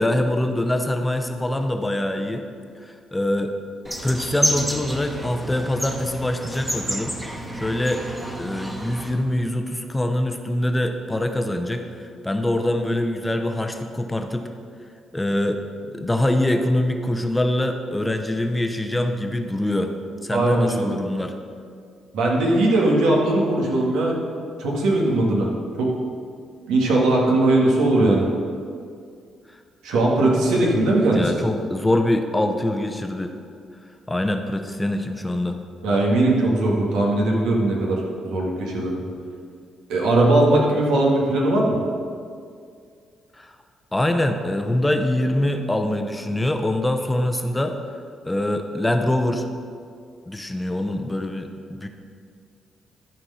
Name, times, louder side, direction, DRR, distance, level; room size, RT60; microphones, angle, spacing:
voice 1, 0.0-2.4 2.8-3.5 4.0-7.1 7.5-8.1 8.4-14.5 15.1-15.6 15.9-19.9 20.2-21.3 31.1-33.3 34.1-35.6 43.3-43.5 43.9-47.8 48.2-49.5 50.3-51.9, left 1 dB, 10° left, 6 dB, 0.7 m, -24 dB
sound 1, 3.8-9.1, equal, 5° right, 1.3 m, -29 dB
voice 2, 20.3-21.0 22.1-24.2 24.6-25.5 25.8-25.9 26.7-28.3 29.8-31.3 35.8-39.0 39.9-41.8, right 2 dB, 90° right, -2 dB, 1.8 m, -19 dB
13.0 x 4.5 x 5.6 m, 2.3 s
cardioid pair, 90°, 0 cm